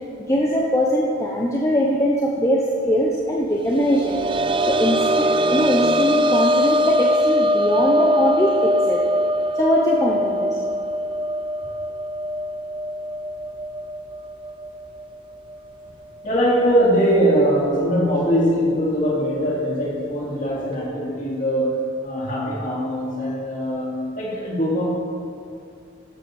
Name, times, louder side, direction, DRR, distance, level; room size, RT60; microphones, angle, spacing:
voice 1, 0.2-4.1 4.7-9.0 9.5-10.6, equal, 15° left, -3 dB, 0.8 m, -21 dB
sound 1, 3.7-15.2 15.5-15.6 17.1-17.2, equal, 25° right, 0.3 m, -22 dB
voice 2, 16.2-21.7 22.0-24.8, equal, 40° left, -6 dB, 3.3 m, -21 dB
12.0 x 6.7 x 7.0 m, 2.4 s
head